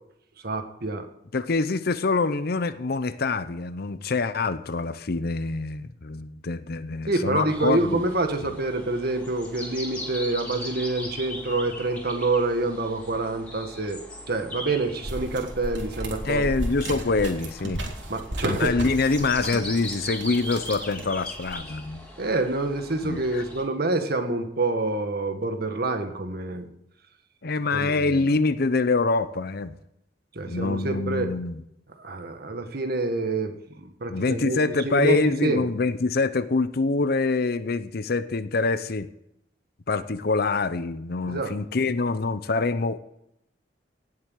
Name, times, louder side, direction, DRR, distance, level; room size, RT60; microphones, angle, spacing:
voice 1, 0.4-1.1 7.1-14.0 14.3-16.4 18.1-18.7 22.2-26.7 27.7-28.3 30.3-31.3 32.0-35.7 41.3-41.5, right 2 dB, 60° right, 6 dB, 1.9 m, -27 dB
voice 2, 1.3-8.0 16.2-17.8 18.5-22.1 23.0-23.4 27.4-29.8 30.5-31.6 34.1-39.1 39.9-43.0, left 3 dB, 60° left, 13 dB, 0.7 m, -25 dB
sound 1, 7.5-23.6, left 1 dB, 5° left, 4.0 m, -40 dB
sound 2, 15.0-21.8, right 1 dB, 85° right, 3.3 m, -34 dB
18.0 x 7.8 x 8.1 m, 0.80 s
head